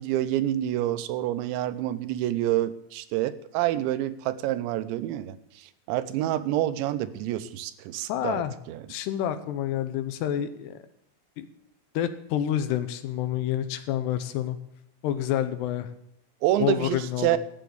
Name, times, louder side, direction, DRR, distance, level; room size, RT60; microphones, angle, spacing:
voice 1, 0.0-8.4 8.7-8.8 16.4-17.4, right 13 dB, 90° right, 12 dB, 3.1 m, -27 dB
voice 2, 8.1-8.5 8.9-10.8 11.4-11.5 11.9-14.6 15.0-15.9 16.6-17.4, left 11 dB, 80° left, 11 dB, 2.7 m, -28 dB
13.0 x 8.2 x 8.0 m, 0.75 s
omnidirectional pair, 5.1 m